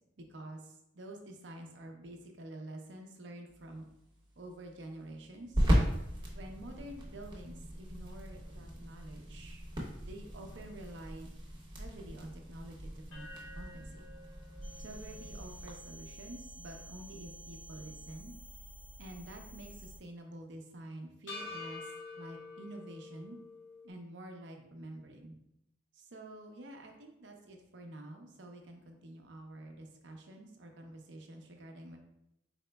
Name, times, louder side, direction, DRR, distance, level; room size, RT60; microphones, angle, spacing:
voice 1, 0.2-3.9 4.4-5.7 6.3-9.7 10.0-11.4 11.8-13.3 13.5-14.1 14.8-18.3 19.0-21.8 22.2-23.4 23.8-25.4 25.9-32.0, right 1 dB, 70° right, 2 dB, 0.6 m, -48 dB
sound 1, 3.5-15.7, equal, 25° right, 0.8 m, -37 dB
sound 2, 13.1-17.4 17.8-17.9 21.3-23.9, left 3 dB, 80° left, 0.6 m, -49 dB
sound 3, 14.6-20.0, right 1 dB, 5° left, 0.4 m, -50 dB
4.3 x 3.9 x 2.2 m, 0.81 s
head